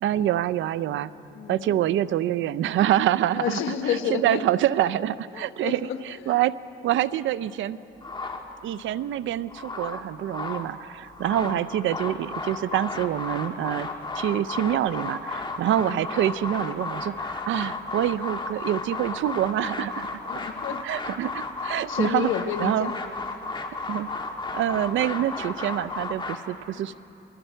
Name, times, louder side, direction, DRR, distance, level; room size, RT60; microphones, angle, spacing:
voice 1, 0.0-1.1 1.5-3.6 4.1-6.5 6.8-7.8 8.6-13.9 14.1-20.1 20.8-22.3 22.6-22.9 23.9-24.1 24.5-26.9, right 12 dB, 75° right, 16 dB, 0.6 m, -26 dB
voice 2, 1.3-1.8 2.0-2.1 3.3-4.4 5.3-6.0 6.2-6.4 11.3-11.7 15.7-16.1 20.3-20.8 21.8-23.0 26.7-26.9, left 9 dB, 85° left, 7 dB, 1.3 m, -31 dB
sound 1, 8.0-8.9 9.3-10.7 11.0-26.4, left 3 dB, 25° left, 1.8 m, -33 dB
28.0 x 21.5 x 4.5 m, 2.8 s
cardioid pair, 90°, 20 cm